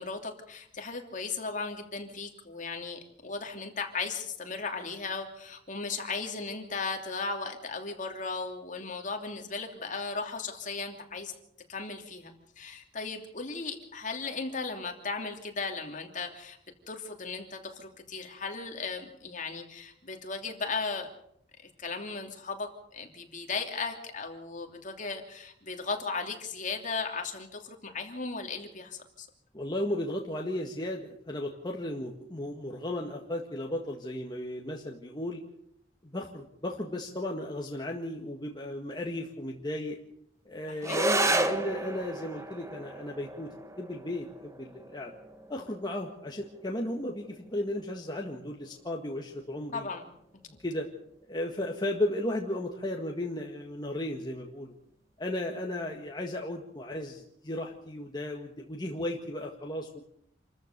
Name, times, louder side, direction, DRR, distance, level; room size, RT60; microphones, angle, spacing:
voice 1, 0.0-11.3 11.7-16.6 16.9-21.1 21.6-29.3 40.7-41.3 49.7-50.1, left 4 dB, 45° left, 4 dB, 2.9 m, -36 dB
voice 2, 29.5-35.4 36.0-40.0 40.5-43.5 43.8-45.1 45.5-49.9 50.5-50.9 51.3-54.7 55.2-60.0, left 1 dB, 25° left, 0 dB, 1.8 m, -35 dB
sound 1, 40.8-49.8, right 2 dB, 15° right, 1.4 m, -34 dB
27.5 x 14.0 x 6.8 m, 0.73 s
head